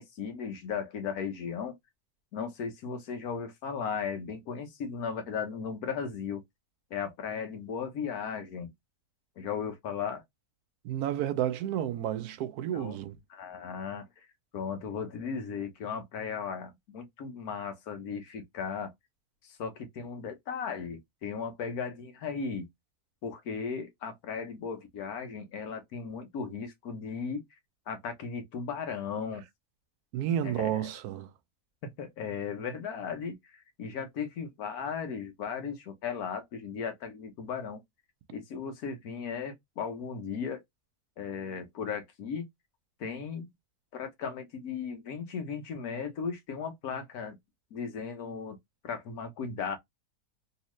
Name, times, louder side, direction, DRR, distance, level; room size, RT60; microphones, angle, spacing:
voice 1, 0.0-1.7 2.3-6.4 6.9-8.7 9.4-10.2 12.7-13.0 13.3-14.3 14.5-18.9 19.4-22.7 23.2-27.4 27.9-29.4 30.4-30.9 31.8-37.8 38.3-40.6 41.2-42.4 43.0-43.5 43.9-47.4 47.7-48.6 48.8-49.8, left 6 dB, 80° left, 1.4 m, -36 dB
voice 2, 10.8-13.2 30.1-31.3, right 11 dB, 90° right, 1.1 m, -31 dB
3.1 x 2.8 x 3.1 m
omnidirectional pair, 1.6 m